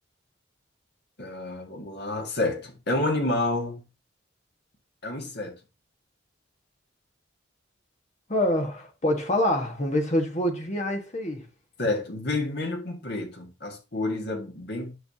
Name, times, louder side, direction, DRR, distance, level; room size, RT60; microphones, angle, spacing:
voice 1, 1.2-3.8 5.0-5.5 11.8-14.9, left 2 dB, 55° left, 2.0 m, -29 dB
voice 2, 8.3-11.4, left 1 dB, 35° left, 1.6 m, -26 dB
10.5 x 5.8 x 2.8 m
head